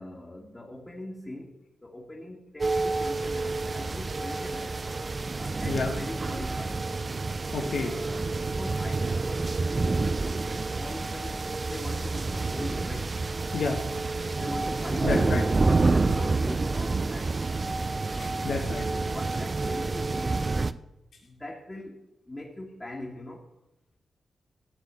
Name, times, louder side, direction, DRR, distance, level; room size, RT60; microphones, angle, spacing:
voice 1, 0.0-1.5 1.8-4.8 5.3-6.9 7.7-11.3 11.6-13.2 14.3-17.4 18.8-20.5 21.2-23.5, left 1 dB, 20° left, -3 dB, 1.9 m, -41 dB
sound 1, 2.6-20.7, right 3 dB, 35° right, 0.5 m, -28 dB
voice 2, 7.5-7.9 13.5-13.8 15.0-15.4 18.1-18.8, left 4 dB, 70° left, 0 dB, 1.4 m, -30 dB
13.0 x 4.8 x 8.2 m, 0.89 s
cardioid pair, 90°, 0 cm